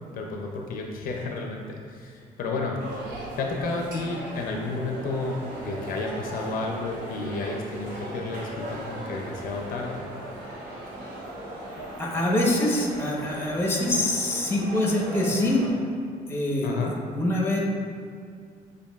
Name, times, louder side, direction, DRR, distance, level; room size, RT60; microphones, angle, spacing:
voice 1, 0.1-2.8 3.4-10.1 16.6-16.9, left 3 dB, 70° left, 1 dB, 0.5 m, -32 dB
sound 1, 2.8-15.7, right 1 dB, 75° right, 1.0 m, -38 dB
voice 2, 12.0-15.6 16.3-16.8 17.1-17.6, left 1 dB, 15° left, -2 dB, 0.7 m, -24 dB
6.8 x 2.6 x 2.3 m, 2.2 s
cardioid pair, 115°, 15 cm